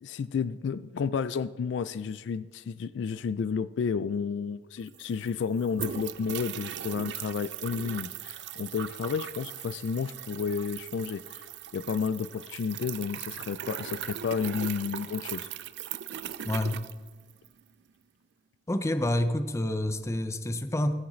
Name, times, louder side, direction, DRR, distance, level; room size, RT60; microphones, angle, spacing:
voice 1, 0.0-11.4 11.7-15.5, left 6 dB, 70° left, 15 dB, 0.3 m, -31 dB
sound 1, 4.5-4.6 4.8-17.6, right 10 dB, 65° right, 0.4 m, -39 dB
voice 2, 16.4-16.9 18.7-20.9, left 1 dB, 15° left, 10 dB, 0.5 m, -28 dB
14.0 x 8.5 x 3.1 m, 1.4 s
head